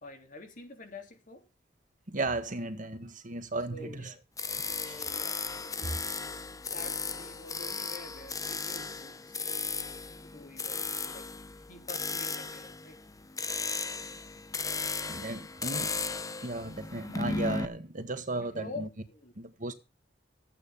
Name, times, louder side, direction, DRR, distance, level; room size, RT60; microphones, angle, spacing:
voice 1, 0.0-1.4 3.7-4.2 4.6-6.2 6.7-9.4 10.2-11.3 11.7-13.0 18.4-19.3, left 2 dB, 45° left, 3.4 m, -47 dB
voice 2, 2.1-4.1 4.9-5.1 15.0-15.9 16.4-18.9 19.3-19.7, right 2 dB, 45° right, 1.7 m, -35 dB
sound 1, 4.4-17.7, left 4 dB, 20° left, 0.8 m, -36 dB
14.5 x 9.0 x 5.7 m
head